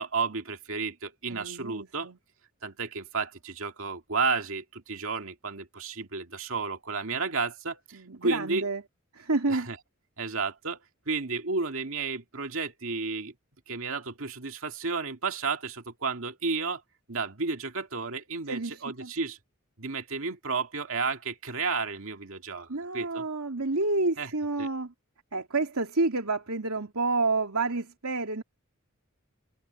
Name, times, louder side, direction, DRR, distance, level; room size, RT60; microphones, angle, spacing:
voice 1, 0.0-2.1 2.6-8.6 9.5-9.8 10.2-10.8 11.1-13.3 13.7-16.8 17.1-19.4 19.8-22.7 22.9-23.2 24.2-24.3 24.6-24.7, right 4 dB, 65° right, 2.2 m, -32 dB
voice 2, 1.3-2.2 7.9-8.8 9.1-9.7 18.5-19.1 22.7-24.9 25.3-28.4, right 3 dB, 85° right, 2.7 m, -29 dB
head